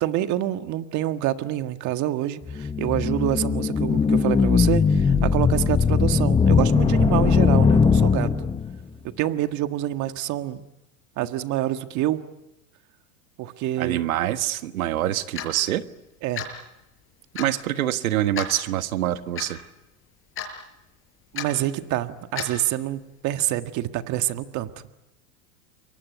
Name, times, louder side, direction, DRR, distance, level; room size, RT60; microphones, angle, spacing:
voice 1, 0.0-8.3 9.0-10.6 11.2-12.2 13.4-14.1 16.2-16.4 21.3-24.7, right 13 dB, 45° right, 9 dB, 1.7 m, -27 dB
sound 1, 2.5-8.8, left 5 dB, 15° left, 1.0 m, -20 dB
voice 2, 13.8-15.8 17.3-19.6, right 13 dB, 85° right, 11 dB, 1.6 m, -25 dB
Clock, 15.4-15.5 16.4-16.6 17.4-17.5 18.4-18.5 19.4-19.5 20.4-20.6 21.4-21.5 22.4-22.6, left 7 dB, 30° left, 6.1 m, -32 dB
29.0 x 23.5 x 8.3 m, 0.92 s
supercardioid pair, 125°, 41 cm